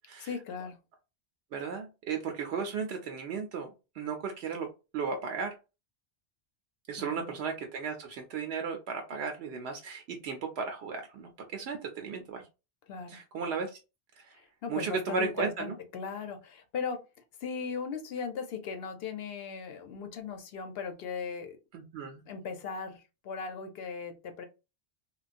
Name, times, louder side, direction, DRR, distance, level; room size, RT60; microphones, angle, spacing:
voice 1, 0.2-0.8 7.0-7.3 12.9-13.2 14.3-17.0 17.4-21.6 22.3-24.5, left 5 dB, 70° left, 0.8 m, -38 dB
voice 2, 1.5-3.7 4.0-4.7 4.9-5.5 6.9-12.4 13.1-13.8 14.7-15.7 21.7-22.2, right 5 dB, 80° right, 0.8 m, -35 dB
3.1 x 2.3 x 2.5 m
omnidirectional pair, 1.1 m